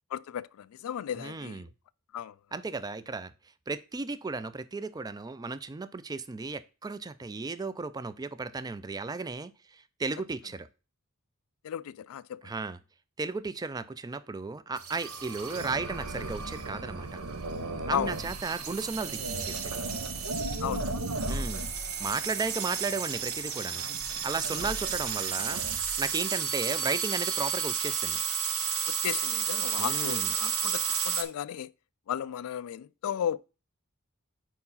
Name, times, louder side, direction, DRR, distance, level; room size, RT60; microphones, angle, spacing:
voice 1, 0.1-1.6 2.1-2.3 11.6-12.4 17.9-18.1 20.6-20.9 21.3-21.4 24.6-24.7 28.9-31.7 32.1-33.4, left 9 dB, 75° left, 0.3 m, -34 dB
voice 2, 1.1-1.7 2.5-3.3 3.7-10.7 12.4-12.8 13.2-17.2 17.9-19.8 21.3-21.7 22.0-23.8 24.2-25.6 26.0-28.2 29.8-30.3, right 4 dB, 20° right, 0.4 m, -35 dB
sound 1, 14.8-31.2, right 6 dB, 80° right, 0.9 m, -32 dB
4.8 x 4.6 x 5.5 m
head